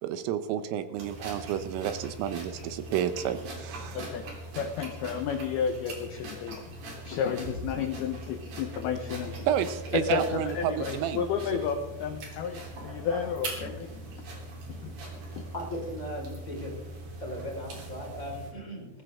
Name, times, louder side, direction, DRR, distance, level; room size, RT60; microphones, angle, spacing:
voice 1, 0.0-4.1 9.5-11.3, right 10 dB, 80° right, 11 dB, 3.5 m, -30 dB
sound 1, 1.0-18.5, right 2 dB, 45° right, 5.1 m, -41 dB
voice 2, 3.9-4.3 4.5-6.7 7.0-9.5 9.9-13.9 14.7-14.9 15.3-15.5, left 7 dB, 80° left, 6 dB, 2.2 m, -32 dB
voice 3, 15.5-16.7 17.2-18.9, equal, 15° left, -3 dB, 4.7 m, -37 dB
20.5 x 16.0 x 3.7 m, 1.0 s
omnidirectional pair, 5.9 m